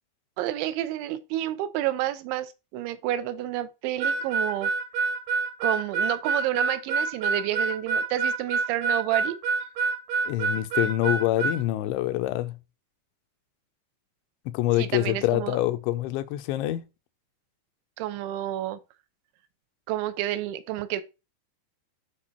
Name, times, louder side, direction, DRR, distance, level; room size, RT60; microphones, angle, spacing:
voice 1, 0.4-4.7 5.6-9.4 14.8-15.6 18.0-18.8 19.9-21.0, right 13 dB, 85° right, 3.1 m, -30 dB
Harmonica, 4.0-11.6, right 4 dB, 70° right, 2.4 m, -26 dB
voice 2, 10.3-12.5 14.5-16.8, left 15 dB, 90° left, 3.0 m, -26 dB
8.6 x 5.2 x 4.3 m
omnidirectional pair, 5.2 m